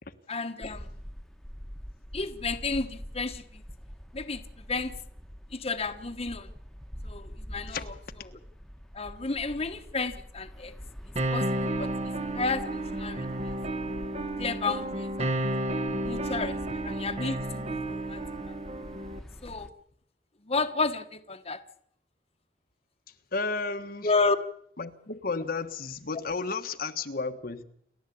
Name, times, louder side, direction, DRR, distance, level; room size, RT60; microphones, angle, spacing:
voice 1, 0.3-0.9 2.1-3.6 4.1-4.4 4.7-4.9 5.5-6.5 7.0-7.8 8.9-10.7 11.3-11.9 12.3-13.3 14.2-15.4 16.0-16.6 16.8-18.2 18.5-18.6 19.4-19.7 20.5-21.6 24.0-24.4, left 3 dB, 35° left, 1.3 m, -31 dB
sound 1, 0.6-19.7, equal, 5° left, 1.4 m, -45 dB
sound 2, 11.2-19.2, right 1 dB, 35° right, 1.4 m, -32 dB
voice 2, 23.1-24.1 24.8-27.6, left 4 dB, 55° left, 1.3 m, -33 dB
29.0 x 12.5 x 8.5 m
head